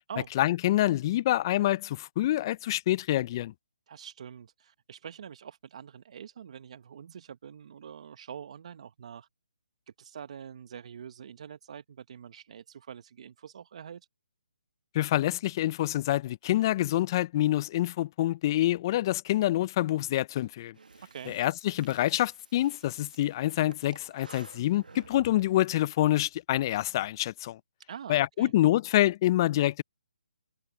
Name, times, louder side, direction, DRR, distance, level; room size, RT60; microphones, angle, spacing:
voice 1, 0.4-3.5 14.9-20.8 21.3-27.6 28.1-29.8, left 14 dB, 30° left, 0.3 m, -26 dB
voice 2, 3.9-9.3 10.0-14.1 21.1-21.3 27.9-28.5, right 8 dB, 50° right, 1.0 m, -45 dB
Breathing, 20.7-25.7, right 4 dB, 85° right, 1.2 m, -54 dB
hypercardioid pair, 155°, 4 cm